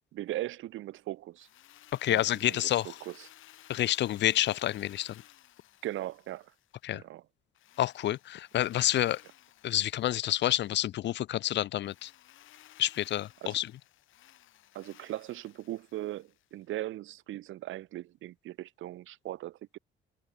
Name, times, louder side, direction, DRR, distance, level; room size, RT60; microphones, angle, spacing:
voice 1, 0.1-1.5 2.1-3.3 5.8-6.5 6.9-7.2 13.4-13.6 14.7-19.8, right 15 dB, 85° right, 1.4 m, -39 dB
Drill, 1.4-6.9 7.5-10.8 11.8-16.6, left 13 dB, 80° left, 3.6 m, -57 dB
voice 2, 2.0-2.9 3.7-5.1 6.8-7.0 7.8-9.2 9.6-12.1 12.8-13.7, left 13 dB, 65° left, 0.5 m, -28 dB
cardioid pair, 90°, 20 cm